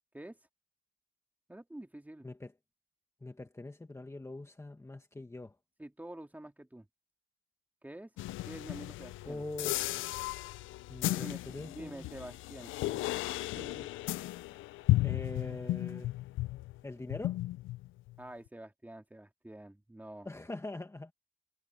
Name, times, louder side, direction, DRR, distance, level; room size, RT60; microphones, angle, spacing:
voice 1, 1.5-2.3 5.8-6.9 7.8-9.4 11.1-13.1 13.4-13.9 18.2-20.3, right 1 dB, 10° right, 2.6 m, -48 dB
voice 2, 3.2-5.5 9.2-10.1 10.9-12.1 15.0-16.2 16.8-17.4 20.2-21.1, left 2 dB, 15° left, 1.7 m, -43 dB
sound 1, 8.2-16.8 17.1-18.2, left 17 dB, 85° left, 0.5 m, -35 dB
cardioid pair, 90°, 20 cm